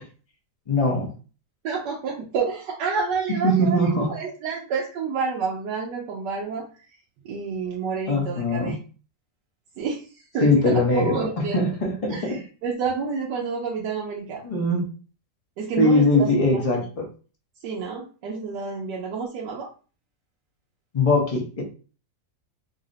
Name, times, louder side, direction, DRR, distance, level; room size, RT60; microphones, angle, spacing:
voice 1, 0.7-1.1 3.4-4.1 8.1-8.7 10.4-12.4 14.4-14.8 15.8-17.0 20.9-21.6, left 1 dB, 35° left, 1 dB, 0.5 m, -21 dB
voice 2, 1.6-6.6 7.2-8.8 9.8-11.6 12.1-14.4 15.6-16.6 17.6-19.7, right 5 dB, 90° right, -2 dB, 1.3 m, -29 dB
3.8 x 2.0 x 3.8 m, 0.37 s
omnidirectional pair, 1.8 m